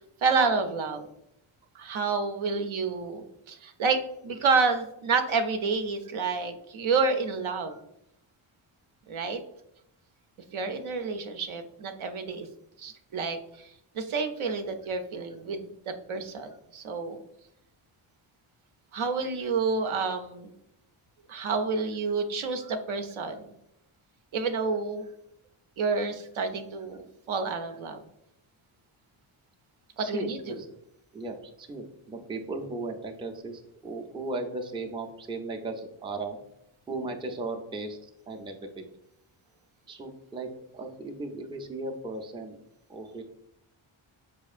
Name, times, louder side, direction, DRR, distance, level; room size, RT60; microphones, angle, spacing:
voice 1, 0.2-1.1 1.8-7.7 9.1-9.4 10.5-12.5 12.8-13.4 13.9-17.2 18.9-20.5 21.3-23.5 24.3-25.0 25.8-28.0 30.0-30.6, right 4 dB, 75° right, 7 dB, 0.6 m, -29 dB
voice 2, 30.0-30.7 31.1-36.4 36.9-38.9 39.9-42.5 42.9-43.2, right 2 dB, 10° right, 3 dB, 0.4 m, -37 dB
4.3 x 2.8 x 2.4 m, 0.80 s
cardioid pair, 70°, 49 cm